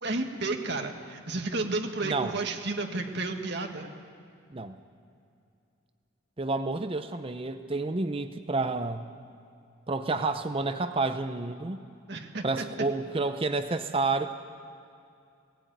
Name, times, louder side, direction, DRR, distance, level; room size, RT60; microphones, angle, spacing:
voice 1, 0.0-3.9 12.1-12.6, right 3 dB, 50° right, 4 dB, 1.7 m, -32 dB
voice 2, 2.0-2.4 4.5-4.8 6.4-9.1 9.9-11.8 12.4-14.3, right 3 dB, 25° right, 9 dB, 0.6 m, -30 dB
18.0 x 16.0 x 9.2 m, 2.4 s
head